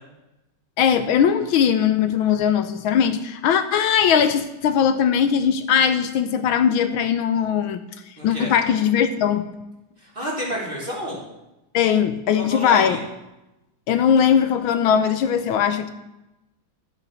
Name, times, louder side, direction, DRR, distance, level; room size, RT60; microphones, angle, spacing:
voice 1, 0.8-7.8 8.2-9.5 11.7-13.0 13.9-15.9, left 8 dB, 80° left, 9 dB, 1.5 m, -19 dB
voice 2, 8.2-8.5 10.0-11.2 12.5-13.0, equal, 25° right, -4 dB, 3.7 m, -29 dB
11.5 x 8.1 x 6.8 m, 0.95 s
omnidirectional pair, 2.3 m